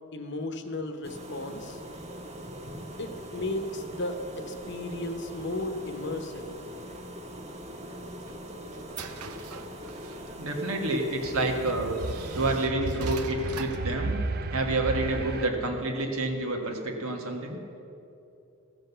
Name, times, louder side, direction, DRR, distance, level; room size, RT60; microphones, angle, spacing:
voice 1, 0.1-1.8 3.0-6.5, left 1 dB, 50° left, 6 dB, 1.0 m, -34 dB
sound 1, 1.0-12.5, equal, 30° right, 0.9 m, -42 dB
sound 2, 7.9-10.4 11.2-11.3 11.9-14.0, right 6 dB, 90° right, 0.8 m, -43 dB
voice 2, 10.4-12.0 12.3-14.2 14.5-17.6, right 2 dB, 70° right, 3 dB, 1.5 m, -29 dB
sound 3, 11.1-15.5, right 3 dB, 45° right, 0.5 m, -34 dB
14.5 x 7.7 x 6.8 m, 2.9 s
head